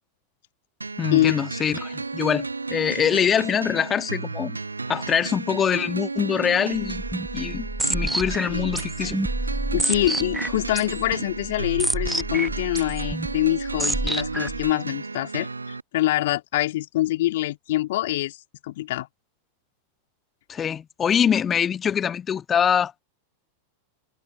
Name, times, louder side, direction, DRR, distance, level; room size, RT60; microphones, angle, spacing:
sound 1, 0.8-15.8, right 3 dB, 80° right, 1.2 m, -33 dB
voice 1, 1.0-4.6 4.9-7.0 7.3-9.2 20.5-23.0, left 8 dB, 25° left, 1.5 m, -24 dB
sound 2, 6.8-14.7, right 1 dB, 5° right, 0.9 m, -29 dB
voice 2, 9.7-15.5 15.9-18.4 18.6-19.1, left 16 dB, 55° left, 2.8 m, -25 dB
figure-of-eight pair, 90°, 0 cm